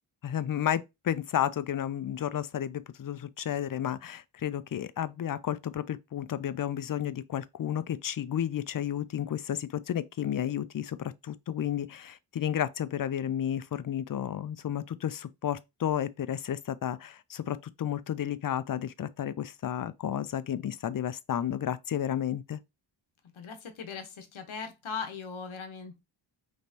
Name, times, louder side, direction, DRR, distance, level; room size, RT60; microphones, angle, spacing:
voice 1, 0.2-22.6, left 10 dB, 45° left, 0.5 m, -32 dB
voice 2, 23.2-26.0, left 5 dB, 75° left, 1.1 m, -39 dB
5.3 x 3.1 x 2.8 m
wide cardioid pair, 110°, 48 cm